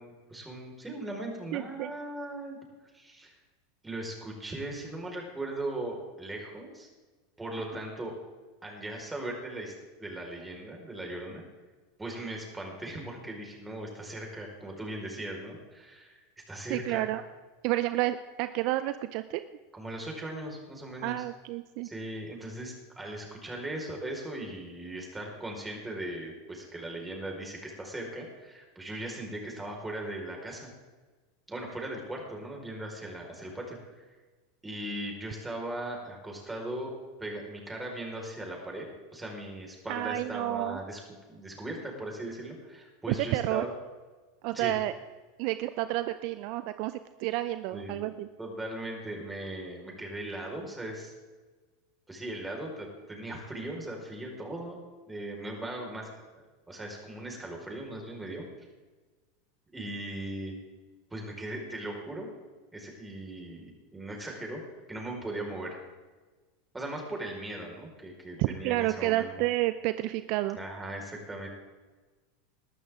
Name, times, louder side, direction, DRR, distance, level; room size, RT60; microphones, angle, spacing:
voice 1, 0.0-2.6 2.9-3.3 3.8-6.9 7.4-8.1 8.6-11.4 12.0-17.1 19.7-21.2 21.8-30.7 31.5-34.0 34.6-36.9 37.2-43.7 44.5-44.7 47.7-48.0 48.4-51.1 52.1-54.8 55.1-58.5 59.7-60.5 61.1-62.3 62.7-64.6 64.9-65.8 66.7-69.3 70.5-71.5, right 1 dB, 10° right, 0 dB, 4.9 m, -39 dB
voice 2, 1.5-1.9 16.7-17.2 17.6-19.4 21.0-21.9 39.9-40.8 43.3-43.7 44.4-44.9 45.4-48.3 68.4-70.6, right 16 dB, 55° right, 12 dB, 0.6 m, -30 dB
20.5 x 12.5 x 3.7 m, 1.3 s
hypercardioid pair, 90°, 0 cm